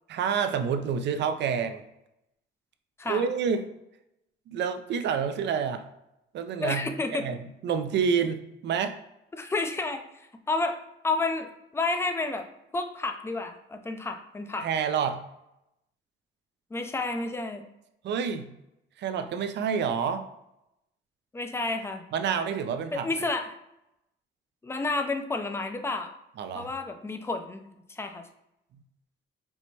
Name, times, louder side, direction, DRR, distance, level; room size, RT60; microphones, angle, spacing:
voice 1, 0.1-1.8 3.1-3.7 4.5-5.8 6.3-6.8 7.1-9.0 14.6-15.2 18.0-18.5 19.0-20.2 22.1-23.1 26.4-26.7, right 7 dB, 60° right, 8 dB, 0.4 m, -28 dB
voice 2, 6.6-7.3 9.3-10.0 10.5-11.5 11.7-12.4 12.7-14.7 16.7-17.6 21.3-22.0 22.9-23.6 24.6-26.1 26.5-27.6 27.9-28.2, left 3 dB, 15° left, 6 dB, 0.4 m, -30 dB
4.5 x 2.1 x 2.7 m, 0.84 s
cardioid pair, 90°, 20 cm